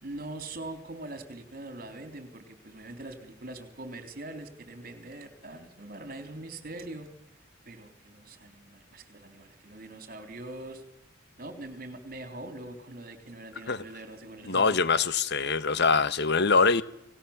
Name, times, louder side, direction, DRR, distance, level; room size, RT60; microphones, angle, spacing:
voice 1, 0.0-7.1 7.7-10.8 11.4-14.8, right 2 dB, 45° right, 3.7 m, -42 dB
voice 2, 14.5-16.8, left 4 dB, 55° left, 1.2 m, -23 dB
30.0 x 20.0 x 7.3 m
head